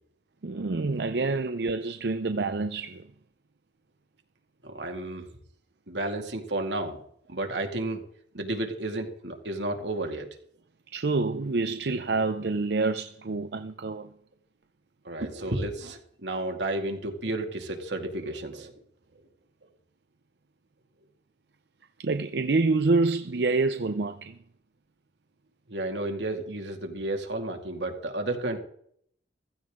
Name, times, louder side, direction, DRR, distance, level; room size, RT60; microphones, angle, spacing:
voice 1, 0.4-3.1 10.9-14.1 22.0-24.4, right 3 dB, 70° right, 0.6 m, -27 dB
voice 2, 4.6-5.3 5.9-7.0 7.3-8.0 8.3-10.3 15.0-18.7 25.7-28.6, right 2 dB, 90° right, 2.3 m, -32 dB
15.5 x 14.5 x 3.7 m
head